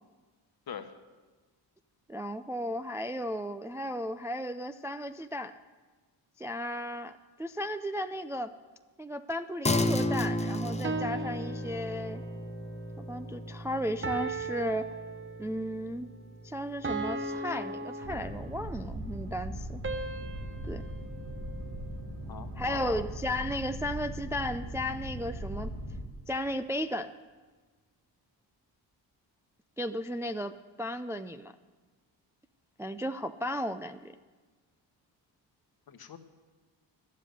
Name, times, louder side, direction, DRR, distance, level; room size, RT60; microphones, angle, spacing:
voice 1, 2.1-5.6 6.4-7.1 7.4-8.5 9.0-12.2 13.0-15.0 15.4-16.1 16.4-19.8 20.6-20.8 22.6-25.7 26.3-27.1 29.8-31.5 32.8-34.1, equal, 5° right, 9 dB, 0.3 m, -35 dB
sound 1, 9.6-19.4, left 1 dB, 15° left, 0.7 m, -35 dB
sound 2, 10.8-12.4 14.0-15.7 16.8-18.8 19.8-22.2, right 2 dB, 25° right, 0.9 m, -38 dB
Boat Water vehicle, 18.0-26.0, right 1 dB, 85° right, 3.3 m, -39 dB
voice 2, 22.3-23.0 35.9-36.2, left 8 dB, 55° left, 9 dB, 1.1 m, -42 dB
12.0 x 7.6 x 9.2 m, 1.3 s
cardioid pair, 80°, 45 cm